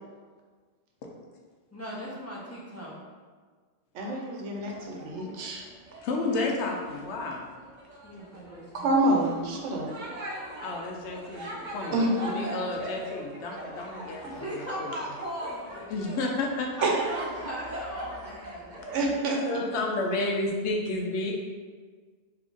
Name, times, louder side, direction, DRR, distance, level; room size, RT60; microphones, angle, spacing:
voice 1, 1.7-3.0 8.0-9.3 14.2-15.9 16.8-18.8 19.1-19.3, equal, 20° left, -8 dB, 0.4 m, -38 dB
voice 2, 3.9-5.7 8.7-9.9 11.9-12.1 16.8-16.9 18.9-19.4 19.7-19.8, right 2 dB, 90° right, 0 dB, 0.9 m, -27 dB
sound 1, 4.5-19.0, right 1 dB, 50° right, 0.6 m, -41 dB
voice 3, 6.0-7.4 10.6-14.9 15.9-16.7 19.4-21.3, left 2 dB, 75° left, 0 dB, 0.9 m, -31 dB
3.7 x 2.8 x 2.4 m, 1.5 s
omnidirectional pair, 1.2 m